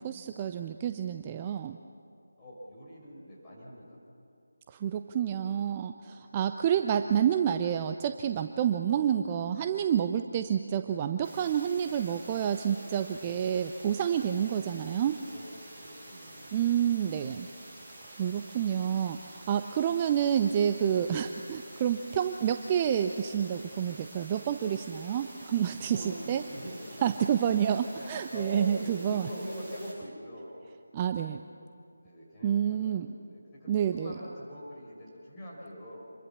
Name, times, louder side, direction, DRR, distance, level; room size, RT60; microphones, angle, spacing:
voice 1, 0.0-1.8 4.7-15.2 16.5-17.5 18.1-26.4 27.0-29.3 30.9-31.4 32.4-33.1 33.7-34.1, right 9 dB, 20° right, 8 dB, 0.5 m, -29 dB
voice 2, 2.4-4.0 6.1-6.4 15.3-16.5 19.3-19.7 25.8-27.1 27.8-30.6 32.0-36.1, equal, 15° left, -7 dB, 6.0 m, -44 dB
sound 1, 11.2-29.9, right 1 dB, 5° right, 7.5 m, -49 dB
26.5 x 22.5 x 7.2 m, 2.7 s
figure-of-eight pair, 160°, 0 cm